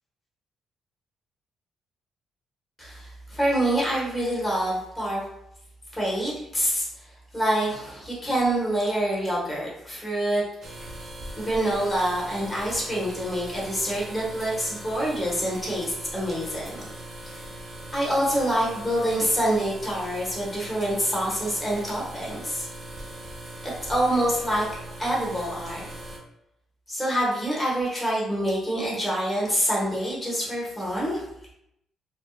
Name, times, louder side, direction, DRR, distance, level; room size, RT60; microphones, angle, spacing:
voice 1, 2.8-5.2 5.9-10.4 11.4-16.9 17.3-17.4 17.9-22.7 23.8-24.6 25.0-25.8 26.9-31.2, right 1 dB, 20° left, -6 dB, 1.0 m, -26 dB
sound 1, 10.6-26.2, right 1 dB, 45° right, 0.7 m, -40 dB
2.6 x 2.2 x 2.3 m, 0.80 s
cardioid pair, 90°, 0 cm